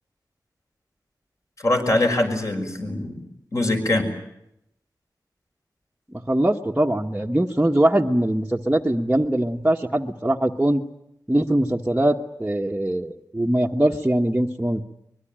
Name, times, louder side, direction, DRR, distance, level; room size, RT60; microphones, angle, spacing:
voice 1, 1.6-3.2 3.5-4.1, left 2 dB, 45° left, 4 dB, 5.9 m, -22 dB
voice 2, 6.1-10.8 11.3-14.8, right 1 dB, 10° right, -1 dB, 1.2 m, -22 dB
24.0 x 22.5 x 8.8 m, 0.81 s
wide cardioid pair, 90°, 8 cm